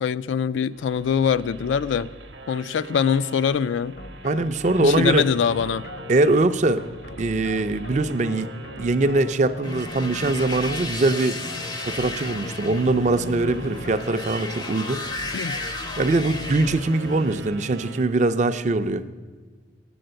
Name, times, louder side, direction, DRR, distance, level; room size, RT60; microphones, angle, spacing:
voice 1, 0.0-2.1 2.5-3.9 4.8-5.8 15.3-15.6, left 7 dB, 75° left, 16 dB, 0.3 m, -23 dB
sound 1, 0.7-18.1, right 2 dB, 65° right, 0.8 m, -43 dB
sound 2, 4.0-17.2, left 2 dB, 55° left, 0.7 m, -40 dB
voice 2, 4.2-5.3 6.1-6.8 7.2-8.5 8.8-11.4 11.8-15.0 16.0-19.0, right 2 dB, 40° right, 11 dB, 0.4 m, -22 dB
sound 3, 9.6-17.3, left 2 dB, 20° left, 0.5 m, -34 dB
8.7 x 7.8 x 7.6 m, 1.5 s
head